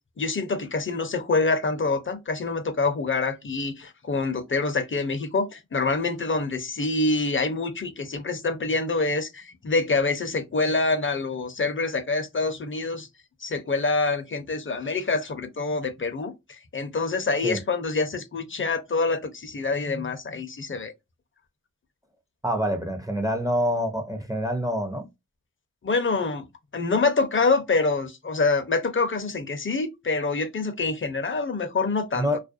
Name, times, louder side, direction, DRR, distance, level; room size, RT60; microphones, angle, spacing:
voice 1, 0.2-13.1 13.4-20.9 25.8-26.4 26.7-32.3, left 3 dB, 35° left, 0.7 m, -26 dB
voice 2, 22.4-25.1 32.2-32.4, equal, 10° right, 0.6 m, -26 dB
2.4 x 2.1 x 2.5 m
cardioid pair, 55°, 33 cm